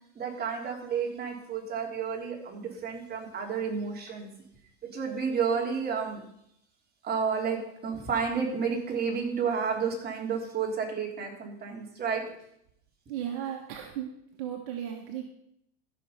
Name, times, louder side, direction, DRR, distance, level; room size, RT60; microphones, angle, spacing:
voice 1, 0.1-4.3 4.8-6.2 7.0-12.2, right 6 dB, 30° right, 0 dB, 3.3 m, -31 dB
voice 2, 13.1-14.1 14.4-15.2, right 10 dB, 65° right, 3 dB, 1.5 m, -35 dB
14.0 x 6.2 x 5.6 m, 0.74 s
supercardioid pair, 110°, 32 cm